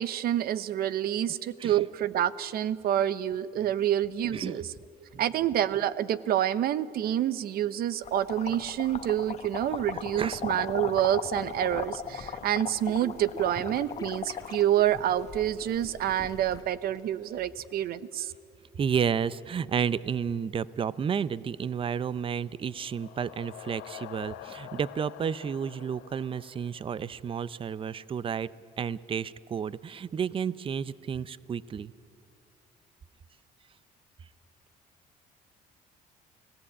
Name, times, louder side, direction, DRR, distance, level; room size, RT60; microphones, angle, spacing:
voice 1, 0.0-4.7 5.2-18.3, right 11 dB, 65° right, 16 dB, 0.9 m, -28 dB
sound 1, 8.0-16.6, left 7 dB, 40° left, 1.2 m, -38 dB
sound 2, 12.7-18.1, left 3 dB, 25° left, 2.1 m, -48 dB
voice 2, 18.7-28.5 28.8-31.9, right 7 dB, 30° right, 18 dB, 0.6 m, -31 dB
sound 3, 22.4-27.3, left 14 dB, 90° left, 0.9 m, -46 dB
29.0 x 17.5 x 8.7 m, 2.5 s
cardioid pair, 110°, 17 cm